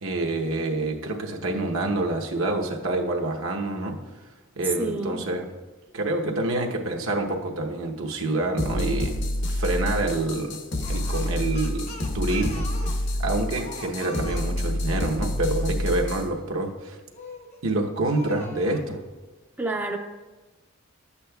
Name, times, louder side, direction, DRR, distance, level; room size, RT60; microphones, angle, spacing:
voice 1, 0.0-4.0 4.6-5.4 5.9-10.6 10.9-12.7 13.2-17.0 17.6-19.0, right 2 dB, 75° right, 1 dB, 1.0 m, -27 dB
voice 2, 4.8-5.2 19.6-20.0, right 2 dB, 10° right, 2 dB, 0.5 m, -28 dB
sound 1, 8.6-16.3, left 1 dB, 60° left, 1.0 m, -28 dB
Speech, 10.8-15.1 17.1-17.6 18.0-18.9, left 2 dB, 30° left, 0.8 m, -42 dB
12.0 x 8.3 x 2.3 m, 1.2 s
head